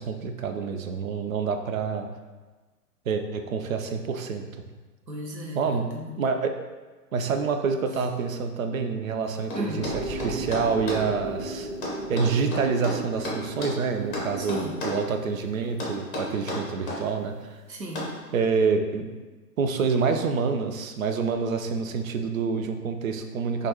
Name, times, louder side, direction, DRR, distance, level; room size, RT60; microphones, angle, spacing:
voice 1, 0.0-2.1 3.1-4.4 5.5-5.9 6.2-6.5 7.1-11.7 12.1-17.3 18.3-19.1 19.6-23.7, right 5 dB, 55° right, 6 dB, 0.5 m, -27 dB
voice 2, 5.1-6.2 9.5-9.9 14.4-14.8 17.7-18.1, right 1 dB, 90° right, 0 dB, 0.9 m, -35 dB
sound 1, 9.5-11.1 11.8-13.8 14.1-15.1 15.8-17.1 18.0-18.2, left 2 dB, 30° left, 0.9 m, -32 dB
sound 2, 9.7-14.8, right 2 dB, 10° right, 1.3 m, -35 dB
4.5 x 2.5 x 2.8 m, 1.3 s
figure-of-eight pair, 125°, 49 cm